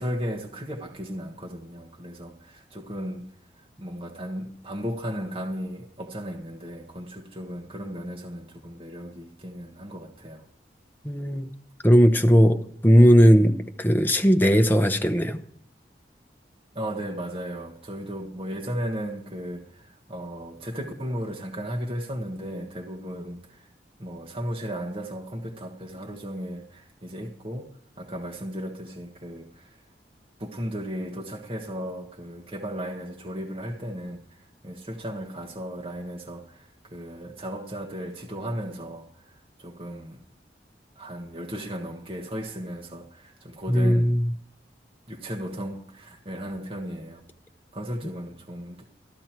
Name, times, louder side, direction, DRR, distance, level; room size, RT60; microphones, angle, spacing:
voice 1, 0.0-3.2 3.8-10.4 16.7-23.7 24.0-27.7 28.0-29.7 30.4-34.4 34.6-40.2 41.0-44.1 45.1-47.2 47.7-48.9, equal, 30° right, 1.3 m, -35 dB
voice 2, 11.0-11.5 11.8-12.6 12.8-15.4 43.7-44.2, equal, 10° left, 0.8 m, -18 dB
14.0 x 12.0 x 4.5 m
head